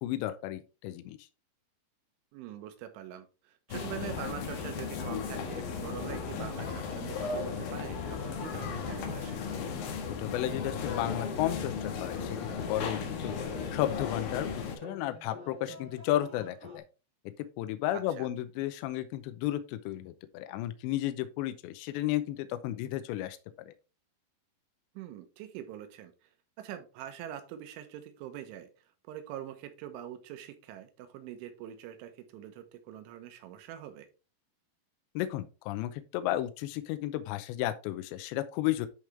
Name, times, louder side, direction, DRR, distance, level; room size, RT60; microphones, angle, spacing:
voice 1, 0.0-1.2 10.2-13.4 13.7-16.8 17.6-23.7 35.2-38.9, left 14 dB, 85° left, 2.7 m, -33 dB
voice 2, 2.3-9.4 17.9-18.3 24.9-26.1 26.6-28.7 29.1-34.1, right 11 dB, 85° right, 3.4 m, -44 dB
sound 1, 3.7-14.8, left 6 dB, 65° left, 2.5 m, -36 dB
sound 2, 5.5-16.8, left 2 dB, 35° right, 1.2 m, -49 dB
11.0 x 5.0 x 3.3 m
omnidirectional pair, 5.6 m